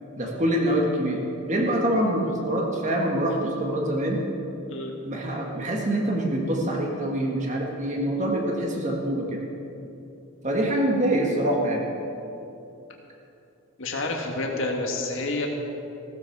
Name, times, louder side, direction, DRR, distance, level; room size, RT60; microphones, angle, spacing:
voice 1, 0.2-4.2 5.0-9.4 10.4-11.8, right 1 dB, 35° right, -1 dB, 1.6 m, -25 dB
voice 2, 13.8-15.5, left 2 dB, 65° left, 1 dB, 1.6 m, -28 dB
16.0 x 13.5 x 4.7 m, 2.9 s
head